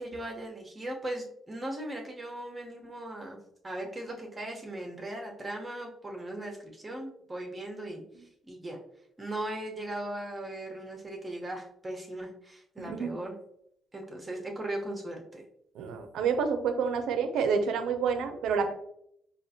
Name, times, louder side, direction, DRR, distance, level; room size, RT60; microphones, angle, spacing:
voice 1, 0.0-3.4 3.6-8.0 8.5-8.8 9.2-13.3 13.9-15.4, right 1 dB, 25° right, 1 dB, 1.0 m, -38 dB
voice 2, 12.8-13.2 15.8-18.7, right 6 dB, 85° right, 7 dB, 0.5 m, -28 dB
5.0 x 2.5 x 2.8 m, 0.73 s
cardioid pair, 90°, 0 cm